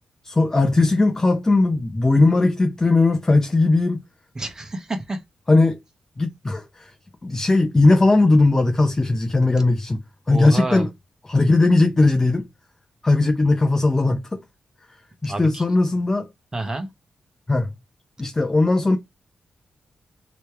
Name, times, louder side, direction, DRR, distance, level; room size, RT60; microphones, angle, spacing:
voice 1, 0.2-4.0 5.5-5.8 6.2-6.9 7.2-10.0 10.3-10.9 11.3-12.5 13.0-14.4 15.2-16.3 17.5-17.7 18.2-19.0, left 2 dB, 20° left, 0.6 m, -18 dB
voice 2, 4.3-5.2 10.3-10.9 15.3-15.6 16.5-16.9, right 2 dB, 25° right, 1.0 m, -28 dB
3.3 x 3.0 x 4.4 m
wide cardioid pair, 115°, 3 cm